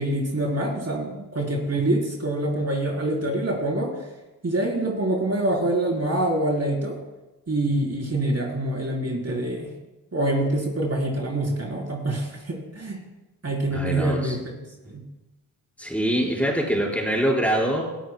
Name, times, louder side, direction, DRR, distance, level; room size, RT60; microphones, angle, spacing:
voice 1, 0.0-3.9 4.4-7.0 7.5-9.7 10.1-13.0 13.4-14.4 14.9-15.0, right 1 dB, 40° right, -2 dB, 3.9 m, -25 dB
voice 2, 13.7-14.4 15.8-17.8, right 1 dB, 5° left, -3 dB, 4.8 m, -24 dB
21.5 x 13.0 x 2.2 m, 1.1 s
cardioid pair, 55°, 39 cm